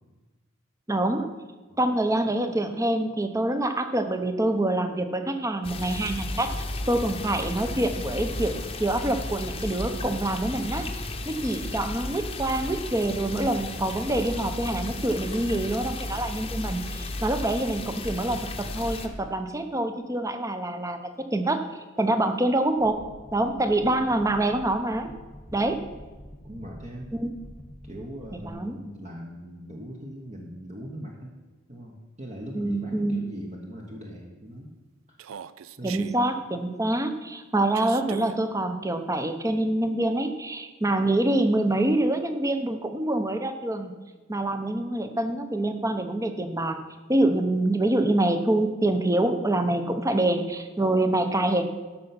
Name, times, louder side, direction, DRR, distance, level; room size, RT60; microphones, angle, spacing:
voice 1, 0.9-1.3 1.8-6.5 6.9-10.9 11.3-21.6 22.0-23.0 23.3-25.1 25.5-25.8 27.1-27.3 28.4-28.8 32.5-33.2 35.8-43.9 44.3-46.8 47.1-51.6, right 1 dB, 15° right, 8 dB, 0.8 m, -26 dB
sound 1, 5.6-19.1, left 2 dB, 30° left, 0.9 m, -34 dB
sound 2, 22.8-28.5, equal, 5° left, 1.2 m, -46 dB
voice 2, 26.4-27.1 27.8-31.3 31.7-34.7 35.1-35.2 35.8-36.1, equal, 35° right, -1 dB, 1.1 m, -40 dB
Human voice, 35.2-36.2 37.7-38.4, right 8 dB, 80° right, 0.4 m, -40 dB
13.5 x 5.7 x 5.8 m, 1.3 s
head